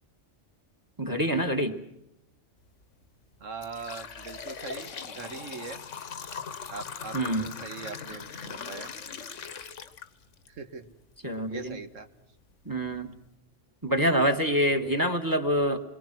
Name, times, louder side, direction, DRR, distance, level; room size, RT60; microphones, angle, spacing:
voice 1, 1.0-1.8 7.1-7.5 11.2-11.8 12.7-13.1 13.8-15.8, equal, 15° right, 8 dB, 1.7 m, -26 dB
sound 1, 2.7-2.9 3.3-10.5 10.9-11.0 11.9-12.0 12.5-12.6 13.0-13.3, left 6 dB, 75° left, 1.5 m, -40 dB
voice 2, 3.4-5.8 6.7-8.9 10.5-10.9 11.5-12.1, right 4 dB, 85° right, 7 dB, 1.9 m, -41 dB
27.0 x 22.5 x 6.1 m, 0.84 s
omnidirectional pair, 1.3 m